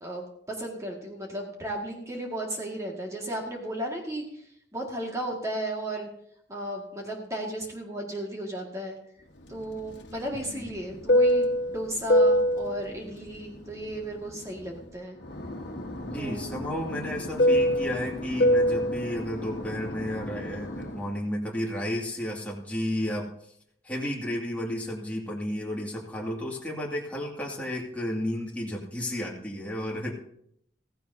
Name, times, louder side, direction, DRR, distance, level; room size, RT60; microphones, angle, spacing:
voice 1, 0.0-4.4 4.7-6.1 6.5-9.0 9.5-15.2 16.2-16.4, right 1 dB, 15° right, -1 dB, 2.0 m, -35 dB
Fixed-wing aircraft airplane, 9.5-14.9 15.2-21.0, equal, 80° left, 1.5 m, -26 dB
voice 2, 16.0-23.3 23.8-30.1, left 1 dB, 10° left, -3 dB, 2.3 m, -32 dB
15.5 x 15.5 x 2.8 m, 0.72 s
head